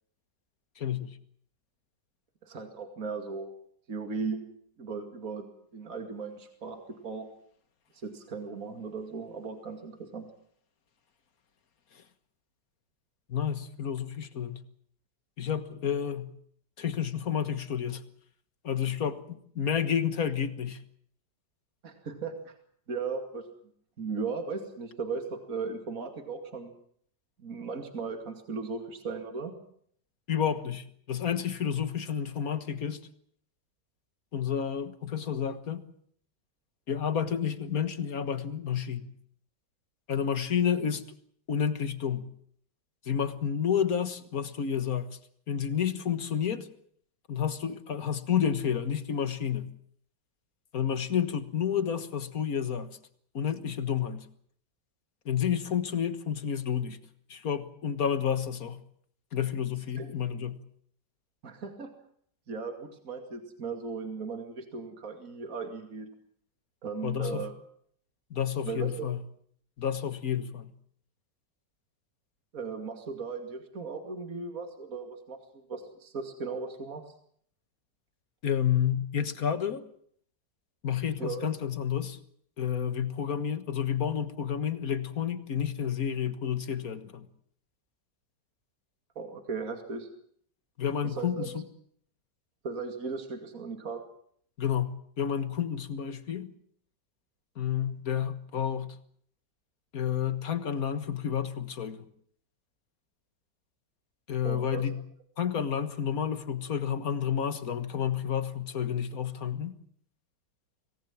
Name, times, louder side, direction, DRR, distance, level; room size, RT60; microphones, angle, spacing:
voice 1, 0.8-1.1 13.3-14.6 15.4-16.3 16.8-18.0 18.6-20.8 30.3-33.1 34.3-35.8 36.9-39.1 40.1-41.1 41.5-42.3 43.1-45.2 45.5-46.7 47.3-49.7 50.7-53.0 53.3-54.3 55.3-57.0 57.3-58.8 59.3-60.6 67.0-67.5 68.3-69.2 69.8-70.7 78.4-79.8 80.8-82.2 82.6-87.3 90.8-91.6 94.6-96.5 97.6-99.0 99.9-102.1 104.3-105.0 105.4-109.8, left 8 dB, 55° left, 1.9 m, -30 dB
voice 2, 2.4-3.5 3.9-4.4 4.8-5.5 5.7-7.3 7.9-10.3 21.8-22.5 22.9-23.4 24.0-26.7 27.4-29.5 60.0-60.1 61.4-61.9 62.5-66.1 66.8-67.5 68.6-69.1 72.5-77.0 81.2-81.4 89.2-90.1 91.0-91.5 92.6-94.0 104.4-104.8, right 4 dB, 50° right, 2.8 m, -37 dB
25.5 x 18.5 x 7.4 m
omnidirectional pair, 1.9 m